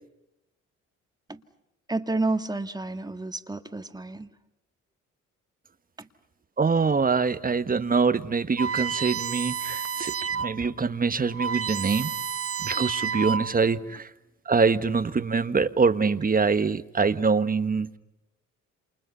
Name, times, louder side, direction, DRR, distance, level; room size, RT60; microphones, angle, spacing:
voice 1, 1.9-4.3 6.0-6.1, right 2 dB, 15° right, 8 dB, 1.8 m, -30 dB
voice 2, 6.6-12.1 12.6-14.1 14.4-18.0, right 4 dB, 30° right, 11 dB, 1.5 m, -24 dB
sound 1, 8.6-10.6 11.0-11.1 11.3-13.7, right 7 dB, 50° right, 1.0 m, -30 dB
29.5 x 27.5 x 5.7 m, 0.90 s
cardioid pair, 90°, 30 cm